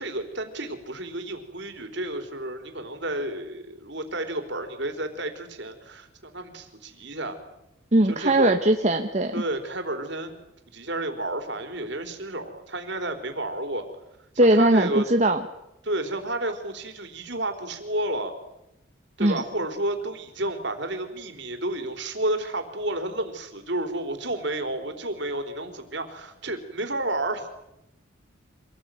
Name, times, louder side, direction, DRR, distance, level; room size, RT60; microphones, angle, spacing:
voice 1, 0.0-7.4 8.1-8.5 9.3-10.4 10.7-13.8 14.5-15.0 15.8-18.3 19.2-27.5, right 1 dB, 55° right, 7 dB, 4.1 m, -31 dB
voice 2, 7.9-9.3 14.4-15.4 19.2-19.4, right 1 dB, 35° right, 5 dB, 1.2 m, -20 dB
26.5 x 19.5 x 9.3 m, 0.88 s
head